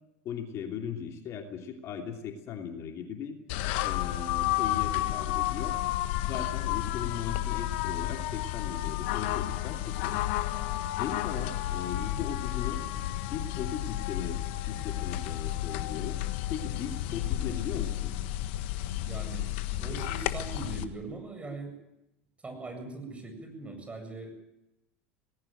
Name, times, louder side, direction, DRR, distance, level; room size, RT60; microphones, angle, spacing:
voice 1, 0.2-3.4 3.8-5.7 6.2-10.2 11.0-12.8 13.3-16.2 16.5-18.1, left 7 dB, 50° left, 4 dB, 3.0 m, -38 dB
sound 1, 3.5-20.8, left 14 dB, 65° left, 1.5 m, -32 dB
voice 2, 18.9-21.8 22.4-24.3, right 3 dB, 20° right, 5 dB, 7.8 m, -41 dB
19.0 x 17.0 x 9.2 m, 0.91 s
hypercardioid pair, 80°, 6 cm